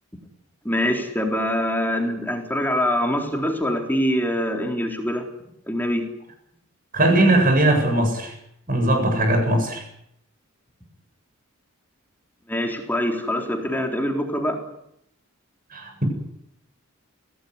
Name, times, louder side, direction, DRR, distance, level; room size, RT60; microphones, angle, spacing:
voice 1, 0.6-5.2 5.7-6.0 12.5-14.6, equal, 10° left, 3 dB, 3.9 m, -24 dB
voice 2, 6.9-8.3 8.7-9.8 15.7-16.0, right 1 dB, 40° right, 4 dB, 7.9 m, -19 dB
23.5 x 18.0 x 9.7 m, 0.75 s
head